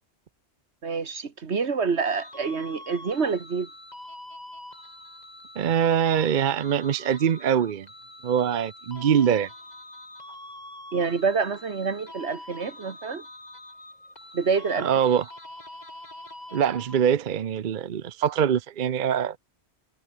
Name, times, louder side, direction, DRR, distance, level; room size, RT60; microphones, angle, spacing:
voice 1, 0.8-3.7 10.9-13.2 14.3-14.9, right 5 dB, 80° right, 2.0 m, -27 dB
sound 1, 2.0-17.3, left 1 dB, 40° left, 5.6 m, -44 dB
voice 2, 5.6-7.9 8.2-9.5 14.8-15.2 16.5-19.4, right 8 dB, 50° right, 0.8 m, -23 dB
omnidirectional pair, 1.1 m